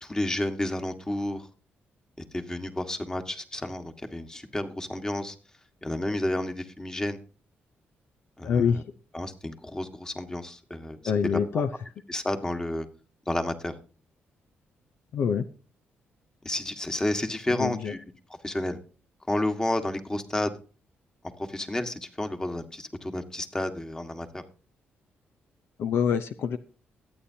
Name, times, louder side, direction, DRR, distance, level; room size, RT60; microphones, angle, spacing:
voice 1, 0.0-1.5 2.3-5.3 5.8-7.2 8.4-8.6 9.1-11.0 11.2-11.4 12.1-12.9 13.3-13.7 16.4-18.0 18.4-18.8 19.3-20.5 21.4-24.4, left 1 dB, 15° left, 7 dB, 1.6 m, -31 dB
voice 2, 8.4-8.8 11.0-11.7 15.1-15.5 17.5-17.9 25.8-26.6, left 7 dB, 75° left, 9 dB, 0.7 m, -25 dB
22.5 x 8.8 x 2.8 m, 0.37 s
cardioid pair, 85°, 4 cm